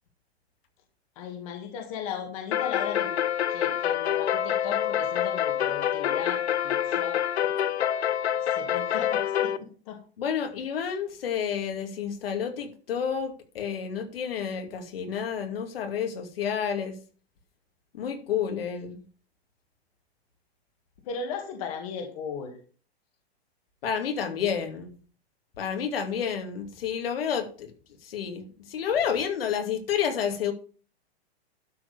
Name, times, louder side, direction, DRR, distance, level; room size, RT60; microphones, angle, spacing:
voice 1, 1.2-3.2 3.5-7.7 8.5-10.0 21.1-22.6, left 6 dB, 30° left, 4 dB, 1.9 m, -36 dB
sound 1, 2.5-9.6, left 10 dB, 80° left, 1.1 m, -26 dB
voice 2, 10.2-17.0 17.9-19.0 23.8-24.9 25.6-27.7 28.0-30.5, left 7 dB, 60° left, 5 dB, 2.5 m, -30 dB
12.0 x 4.7 x 6.8 m, 0.41 s
hypercardioid pair, 170°, 32 cm